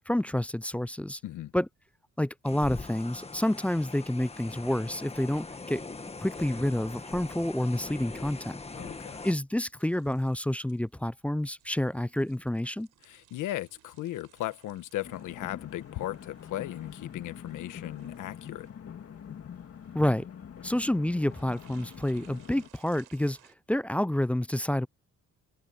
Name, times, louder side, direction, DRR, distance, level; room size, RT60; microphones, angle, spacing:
voice 1, 0.0-1.2 1.5-1.7 2.2-5.8 6.2-8.6 9.2-12.9 19.9-20.3 20.6-23.4 23.7-24.9, left 1 dB, 5° left, 0.3 m, -29 dB
sound 1, 2.4-9.3, left 3 dB, 20° left, 1.7 m, -42 dB
sound 2, 6.4-23.5, right 14 dB, 85° right, 4.9 m, -63 dB
voice 2, 8.7-9.2 13.0-18.7, left 14 dB, 85° left, 1.4 m, -37 dB
sound 3, 15.0-22.7, left 8 dB, 50° left, 2.4 m, -45 dB
cardioid pair, 90°, 30 cm